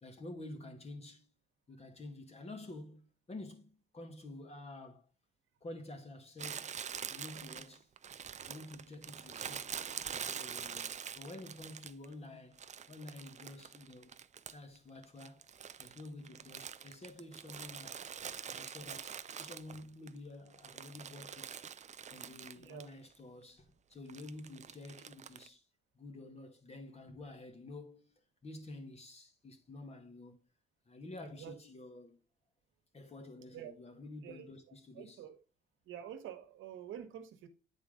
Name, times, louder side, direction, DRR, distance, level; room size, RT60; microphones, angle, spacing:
voice 1, 0.0-1.3 1.7-5.0 5.6-6.7 7.1-7.9 8.5-9.7 10.3-12.6 12.9-14.1 14.5-15.5 15.8-18.0 18.5-21.6 22.1-25.6 25.9-30.4 30.9-32.2 32.9-35.2, left 2 dB, 30° left, 2.0 m, -50 dB
Crumpling crinkling, 6.4-12.1 12.6-14.8 15.0-20.1 20.5-22.9 23.1-23.2 24.1-25.5, right 7 dB, 35° right, 0.5 m, -45 dB
voice 2, 22.6-22.9 31.2-31.5 33.5-33.7 34.2-35.4 35.8-37.5, right 10 dB, 85° right, 1.3 m, -48 dB
8.8 x 4.4 x 3.7 m
cardioid pair, 90°, 20 cm